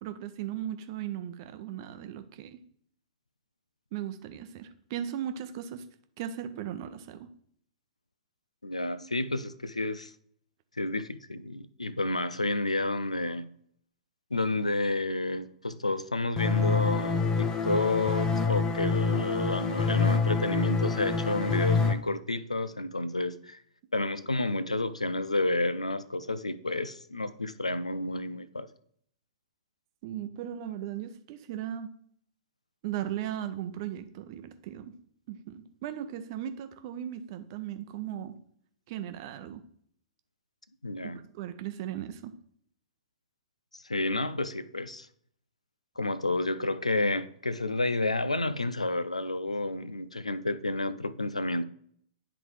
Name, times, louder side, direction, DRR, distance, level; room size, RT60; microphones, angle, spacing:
voice 1, 0.0-2.6 3.9-5.9 6.2-7.3 30.0-31.9 32.8-35.0 35.3-38.4 38.9-39.6 41.0-42.4, right 10 dB, 40° right, 0.7 m, -37 dB
voice 2, 8.6-10.1 10.8-13.5 14.3-23.6 23.9-28.7 40.8-41.2 43.7-45.1 46.0-51.6, left 2 dB, 85° left, 0.4 m, -30 dB
sound 1, 16.4-21.9, left 4 dB, 20° left, 0.6 m, -27 dB
10.0 x 3.9 x 3.2 m
figure-of-eight pair, 105°, 3 cm